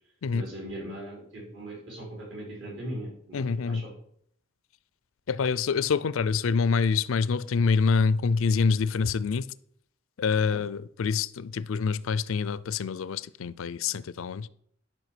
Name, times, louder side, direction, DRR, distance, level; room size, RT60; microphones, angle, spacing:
voice 1, 0.3-3.9 10.5-10.6, right 1 dB, 60° right, 4.9 m, -39 dB
voice 2, 3.3-3.8 5.3-9.5 10.2-14.5, left 5 dB, 85° left, 0.4 m, -26 dB
11.0 x 5.4 x 6.0 m
head